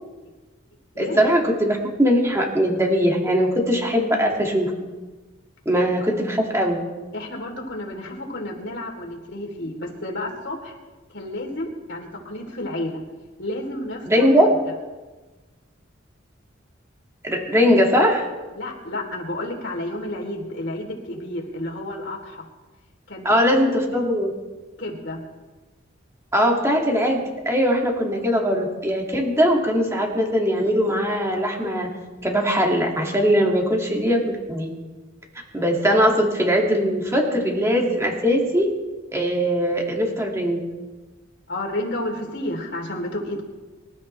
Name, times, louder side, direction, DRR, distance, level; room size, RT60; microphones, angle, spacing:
voice 1, 1.0-4.7 5.7-6.8 14.1-14.5 17.2-18.3 23.2-24.3 26.3-31.9 32.2-34.7 35.5-38.7 39.1-40.6, equal, 15° right, 0 dB, 2.2 m, -20 dB
voice 2, 7.1-10.8 11.1-13.0 13.4-14.3 18.5-22.4 23.1-23.6 24.8-25.2 41.5-43.4, left 1 dB, 60° left, 0 dB, 3.4 m, -31 dB
25.5 x 12.5 x 3.3 m, 1.2 s
head